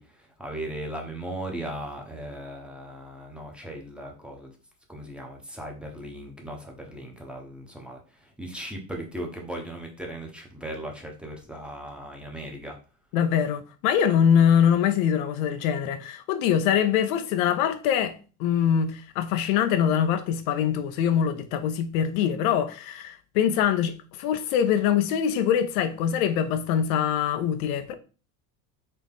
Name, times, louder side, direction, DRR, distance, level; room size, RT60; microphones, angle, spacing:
voice 1, 0.0-4.5 4.9-12.8, right 1 dB, ahead, 1.0 m, -38 dB
voice 2, 13.1-27.9, left 8 dB, 75° left, 0.7 m, -23 dB
4.2 x 3.0 x 3.5 m
supercardioid pair, 115°, 42 cm